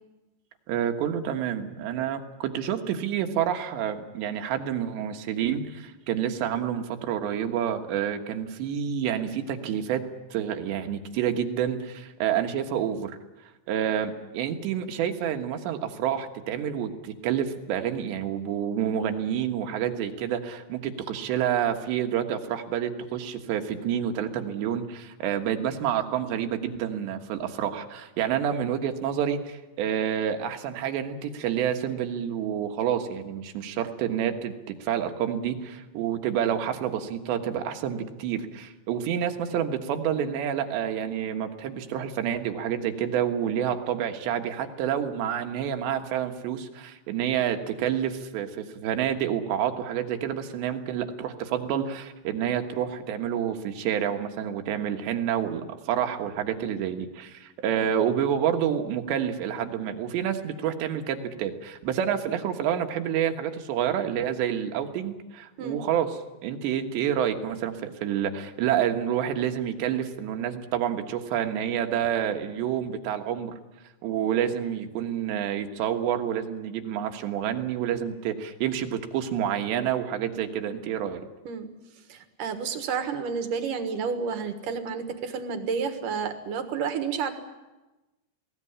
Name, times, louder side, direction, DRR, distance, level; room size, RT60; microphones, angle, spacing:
voice 1, 0.7-10.0 10.3-13.2 13.7-73.6 74.0-81.3, right 9 dB, 85° right, 5 dB, 3.7 m, -28 dB
voice 2, 82.1-87.3, right 6 dB, 60° right, 7 dB, 2.8 m, -30 dB
21.5 x 17.5 x 9.9 m, 1.1 s
omnidirectional pair, 4.9 m